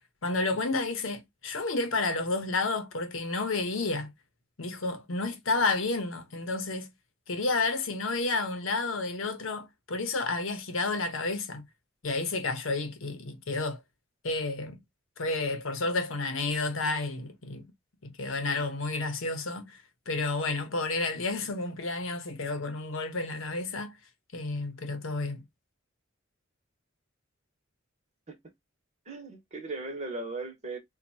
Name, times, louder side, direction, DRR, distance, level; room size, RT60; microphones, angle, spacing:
voice 1, 0.2-4.1 4.6-6.9 7.3-11.7 12.0-13.8 14.2-14.8 15.2-17.7 18.0-19.8 20.1-24.0 24.3-25.4, left 3 dB, 70° left, 1.0 m, -31 dB
voice 2, 29.0-30.8, right 3 dB, 35° right, 1.4 m, -37 dB
4.5 x 2.5 x 2.7 m
head